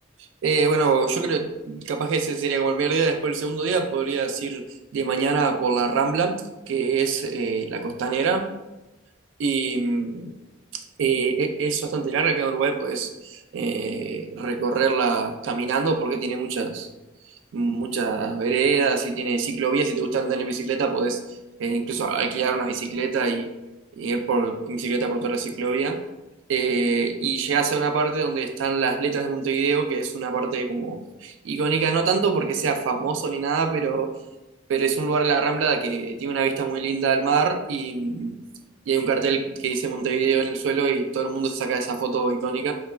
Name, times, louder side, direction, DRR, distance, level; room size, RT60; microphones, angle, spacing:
voice 1, 0.4-4.6 4.9-6.4 6.7-8.5 9.4-10.3 11.0-16.9 17.5-21.2 21.6-23.5 23.9-26.0 26.5-34.1 34.7-38.4 38.9-42.7, right 5 dB, 90° right, 6 dB, 0.3 m, -24 dB
2.2 x 2.1 x 3.1 m, 1.0 s
head